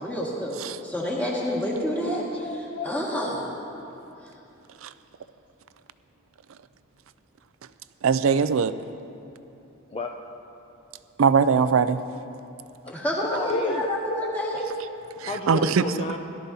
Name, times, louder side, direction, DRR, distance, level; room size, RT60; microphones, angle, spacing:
voice 1, 0.0-0.6 0.8-2.2 2.8-3.5 12.9-14.7, left 1 dB, 10° left, 1.8 m, -28 dB
voice 2, 2.0-3.0 9.9-10.2 12.8-12.9 13.2-13.9 14.5-14.7 15.2-16.2, left 2 dB, 25° left, 0.4 m, -32 dB
voice 3, 8.0-8.8 11.2-12.0 15.2-15.9, right 6 dB, 75° right, 0.4 m, -21 dB
17.5 x 12.5 x 2.8 m
head